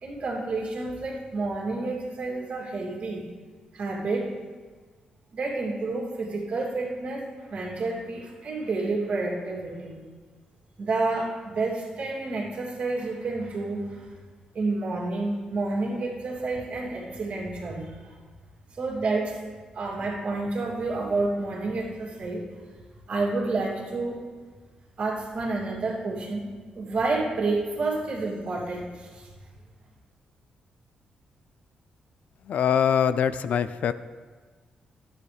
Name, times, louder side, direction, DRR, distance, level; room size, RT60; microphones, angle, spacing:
voice 1, 0.0-3.3 3.7-4.3 5.3-10.0 10.8-14.1 14.5-18.1 18.7-19.4 19.7-22.5 23.1-24.2 25.0-26.4 26.7-29.3, right 3 dB, 60° right, -3 dB, 2.6 m, -29 dB
voice 2, 32.5-33.9, left 8 dB, 70° left, 13 dB, 0.4 m, -23 dB
12.5 x 9.7 x 3.4 m, 1.5 s
cardioid pair, 95°, 3 cm